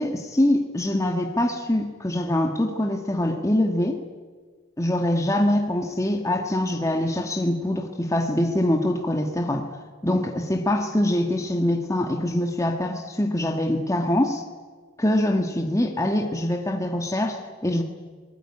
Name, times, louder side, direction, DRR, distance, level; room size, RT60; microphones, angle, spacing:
voice 1, 0.0-4.0 4.8-9.7 10.0-14.4 15.0-17.8, left 1 dB, 15° left, 3 dB, 1.6 m, -24 dB
25.5 x 19.0 x 9.8 m, 1.6 s
head